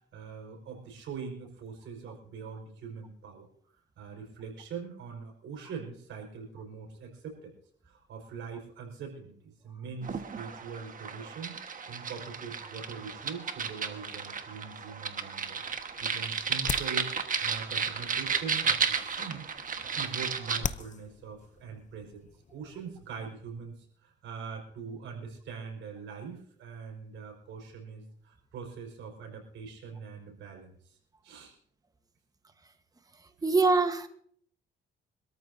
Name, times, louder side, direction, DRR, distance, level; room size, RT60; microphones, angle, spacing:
voice 1, 0.1-3.5 4.0-7.5 7.8-11.6 11.9-15.6 16.0-17.1 17.4-19.4 19.9-31.0 31.2-31.5, right 5 dB, 80° right, 1 dB, 4.8 m, -42 dB
sound 1, 10.0-20.6, right 6 dB, 40° right, 1.4 m, -33 dB
sound 2, 15.6-23.3, left 7 dB, 40° left, 0.7 m, -43 dB
voice 2, 33.4-34.1, right 3 dB, 20° right, 8 dB, 1.2 m, -23 dB
25.0 x 13.5 x 2.7 m, 0.63 s
cardioid pair, 90°, 20 cm